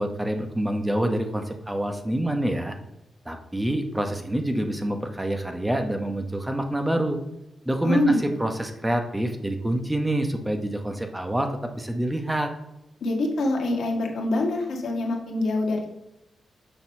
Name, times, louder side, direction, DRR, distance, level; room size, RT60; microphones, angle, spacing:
voice 1, 0.0-2.7 3.2-7.2 7.6-8.0 8.4-11.5 11.8-12.5, right 1 dB, 10° right, 5 dB, 1.0 m, -26 dB
voice 2, 7.8-8.4 13.0-15.9, left 1 dB, 80° left, 1 dB, 1.6 m, -25 dB
7.1 x 4.2 x 5.5 m, 0.89 s
cardioid pair, 80°, 0 cm